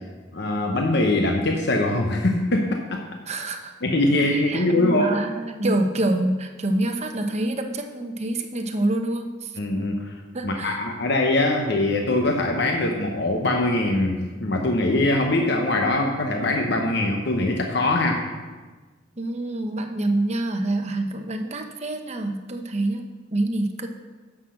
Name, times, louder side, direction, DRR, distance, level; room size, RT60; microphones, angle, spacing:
voice 1, 0.3-3.0 3.8-5.2 9.6-10.2 10.4-18.3, left 2 dB, 60° left, 2 dB, 0.9 m, -22 dB
voice 2, 3.3-3.7 4.3-9.6 10.3-10.8 19.2-23.9, right 1 dB, 35° right, 5 dB, 0.9 m, -26 dB
10.0 x 6.2 x 6.4 m, 1.3 s
head